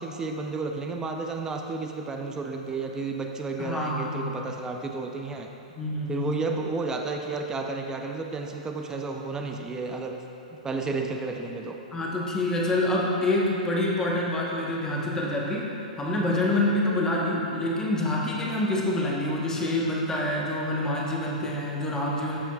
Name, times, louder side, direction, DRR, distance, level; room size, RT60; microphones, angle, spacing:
voice 1, 0.0-5.5 6.1-10.2 10.6-11.8, right 3 dB, 15° right, 3 dB, 0.6 m, -32 dB
voice 2, 3.6-4.5 5.7-6.3 11.9-15.7 16.0-22.4, left 1 dB, 15° left, -3 dB, 1.2 m, -27 dB
13.5 x 5.6 x 2.4 m, 2.9 s
hypercardioid pair, 120°, 4 cm